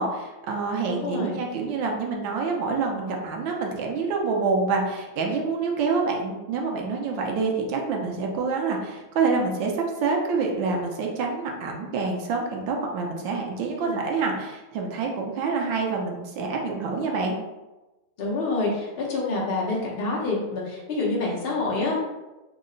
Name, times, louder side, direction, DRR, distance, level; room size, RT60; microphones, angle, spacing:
voice 1, 0.0-17.4, right 4 dB, 75° right, 1 dB, 1.2 m, -27 dB
voice 2, 0.9-1.4 13.8-14.0 18.2-22.0, left 3 dB, 70° left, -4 dB, 0.5 m, -27 dB
3.6 x 2.1 x 3.7 m, 1.1 s
omnidirectional pair, 2.2 m